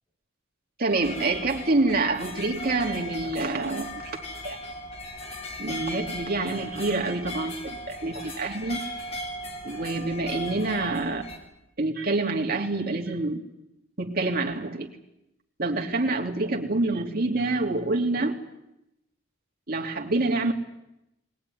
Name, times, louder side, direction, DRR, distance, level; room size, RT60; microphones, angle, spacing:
voice 1, 0.8-4.2 4.4-4.6 5.6-8.8 9.6-11.3 11.8-13.4 14.0-14.9 15.6-18.3 19.7-20.5, right 2 dB, 50° right, 1 dB, 2.8 m, -27 dB
sound 1, 0.9-11.4, left 1 dB, 30° left, 4.0 m, -37 dB
21.5 x 19.0 x 9.9 m, 0.87 s
head